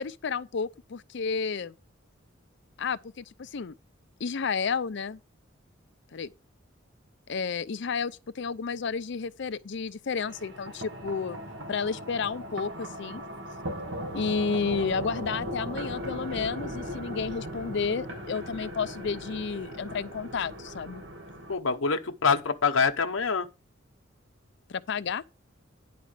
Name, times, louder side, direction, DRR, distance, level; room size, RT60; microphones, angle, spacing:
voice 1, 0.0-1.7 2.8-3.7 4.2-5.2 6.1-6.3 7.3-11.4 11.7-13.2 14.1-21.0 24.7-25.2, left 5 dB, 60° left, 0.5 m, -31 dB
sound 1, 10.2-21.5, equal, 70° right, 1.6 m, -38 dB
voice 2, 21.5-23.5, left 5 dB, 80° left, 0.9 m, -25 dB
10.5 x 4.3 x 6.6 m
head